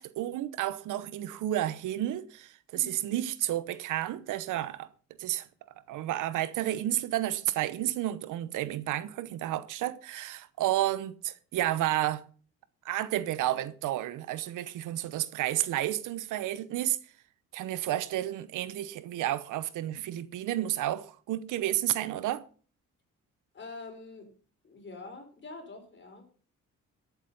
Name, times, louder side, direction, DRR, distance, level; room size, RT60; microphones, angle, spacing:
voice 1, 0.0-4.9 5.2-5.5 5.9-12.2 12.8-17.0 17.5-22.4, right 13 dB, 85° right, 0.9 m, -31 dB
voice 2, 2.7-3.1 23.5-24.3 24.6-26.2, left 3 dB, 40° left, 4.8 m, -45 dB
13.5 x 8.2 x 5.4 m
cardioid pair, 90°, 30 cm